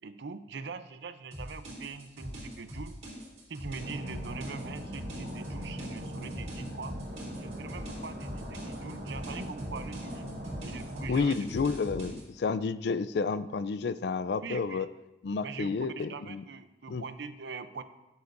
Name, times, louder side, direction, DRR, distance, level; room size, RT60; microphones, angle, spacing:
voice 1, 0.0-3.0 3.5-7.0 7.4-10.3 10.6-11.4 14.4-14.9 15.4-17.8, right 4 dB, 70° right, 11 dB, 0.5 m, -42 dB
sound 1, 1.3-12.2, equal, 40° right, 2.9 m, -42 dB
sound 2, 3.8-11.1, equal, 55° right, 1.6 m, -40 dB
voice 2, 11.1-14.9 15.2-16.4 16.9-17.0, left 4 dB, 65° left, 15 dB, 0.3 m, -30 dB
16.0 x 7.0 x 2.6 m, 1.0 s
head